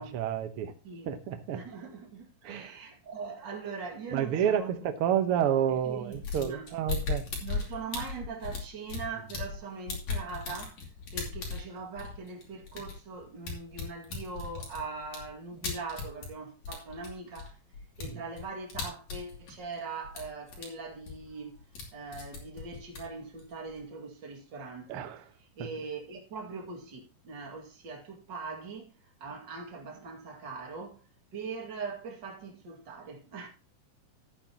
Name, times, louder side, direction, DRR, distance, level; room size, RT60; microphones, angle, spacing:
voice 1, 0.0-0.7 1.1-1.6 2.4-2.8 4.1-7.3 18.0-18.2 24.9-25.2 25.6-25.7, right 9 dB, 70° right, 1.4 m, -30 dB
voice 2, 1.5-4.7 5.8-6.7 7.4-10.8 11.1-17.6 18.0-21.6 21.9-25.1 25.6-31.0 31.3-33.5, right 4 dB, 35° right, 2.5 m, -41 dB
sound 1, 6.1-9.6 9.9-16.4 16.6-19.8 20.0-20.7 20.9-21.9 22.1-23.8, left 4 dB, 60° left, 4.1 m, -37 dB
13.0 x 8.9 x 2.9 m
omnidirectional pair, 4.1 m